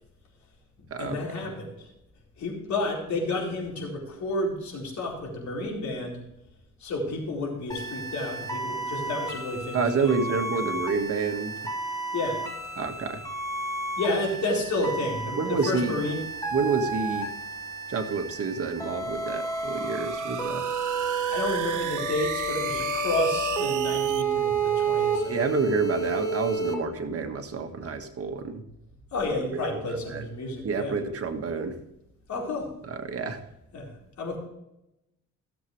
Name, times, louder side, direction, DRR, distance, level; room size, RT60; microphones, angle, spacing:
voice 1, 0.8-1.9 2.4-6.2 6.8-10.2 12.1-12.4 14.0-16.2 21.3-25.6 29.1-30.9 32.3-32.7 33.7-33.9 34.2-34.4, left 2 dB, 65° left, -2 dB, 4.3 m, -30 dB
sound 1, 7.7-26.8, right 3 dB, 10° left, 2.7 m, -31 dB
voice 2, 9.7-11.5 12.8-13.2 15.4-16.0 16.5-17.3 17.9-20.6 25.3-28.6 29.6-30.3 30.6-31.8 32.9-33.4, right 5 dB, 50° right, 5 dB, 1.7 m, -28 dB
sound 2, 18.8-24.2, right 13 dB, 80° right, 0.7 m, -36 dB
16.0 x 7.6 x 3.3 m, 0.86 s
cardioid pair, 90°, 30 cm